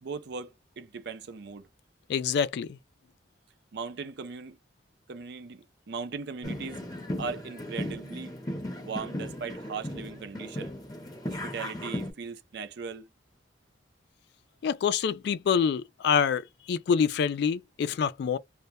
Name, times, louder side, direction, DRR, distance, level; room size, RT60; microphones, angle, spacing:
voice 1, 0.0-1.7 3.7-4.6 5.1-6.8 7.2-8.3 8.8-10.7 11.2-13.1, right 5 dB, 65° right, 0.5 m, -38 dB
voice 2, 2.1-2.7 14.6-18.4, left 6 dB, 65° left, 0.3 m, -26 dB
sound 1, 6.4-12.1, left 1 dB, 20° left, 0.8 m, -36 dB
2.2 x 2.1 x 2.8 m
head